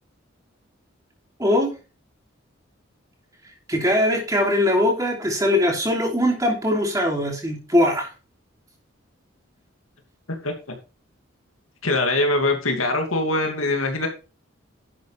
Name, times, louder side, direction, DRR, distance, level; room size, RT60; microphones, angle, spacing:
voice 1, 1.4-1.7 3.7-8.1, left 1 dB, 15° right, 0 dB, 3.0 m, -21 dB
voice 2, 11.8-14.1, left 2 dB, 85° left, 4 dB, 2.5 m, -22 dB
11.5 x 7.5 x 3.5 m, 0.33 s
head